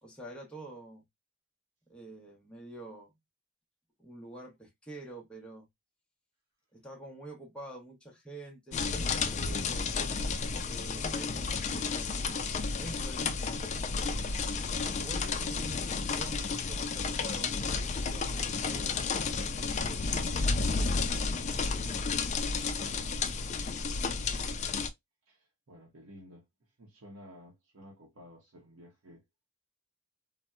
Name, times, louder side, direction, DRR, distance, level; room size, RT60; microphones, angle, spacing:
voice 1, 0.0-1.0 1.9-3.1 4.0-5.7 6.7-9.9 10.6-12.1 12.7-13.9 15.0-19.7 21.7-22.6, right 2 dB, 5° left, 0.7 m, -47 dB
sound 1, 8.7-24.9, left 4 dB, 35° left, 0.3 m, -32 dB
voice 2, 25.3-26.5 26.8-29.2, equal, 70° right, 0.8 m, -53 dB
4.0 x 2.1 x 2.2 m
head